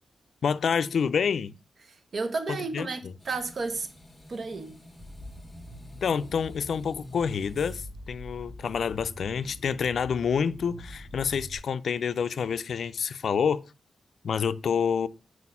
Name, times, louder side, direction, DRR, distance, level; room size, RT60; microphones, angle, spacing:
voice 1, 0.4-1.5 2.5-2.9 6.0-13.6 14.2-15.1, left 6 dB, 75° left, 0.3 m, -28 dB
voice 2, 1.9-3.9 4.3-4.8, right 3 dB, 55° right, 0.8 m, -32 dB
sound 1, 3.2-8.0, left 1 dB, 5° left, 1.6 m, -52 dB
sound 2, 5.0-11.6, equal, 20° right, 1.5 m, -44 dB
4.7 x 4.2 x 5.4 m
wide cardioid pair, 110°, 0 cm